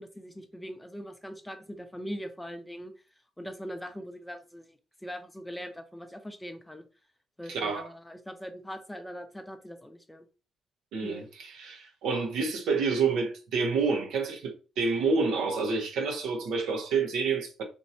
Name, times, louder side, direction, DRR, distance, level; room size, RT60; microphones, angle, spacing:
voice 1, 0.0-2.9 3.4-4.7 5.0-6.8 7.4-10.2 11.0-11.3, equal, 5° left, 0.6 m, -41 dB
voice 2, 7.5-7.9 10.9-17.6, right 4 dB, 85° right, 0.9 m, -28 dB
2.7 x 2.7 x 4.3 m
cardioid pair, 90°, 0 cm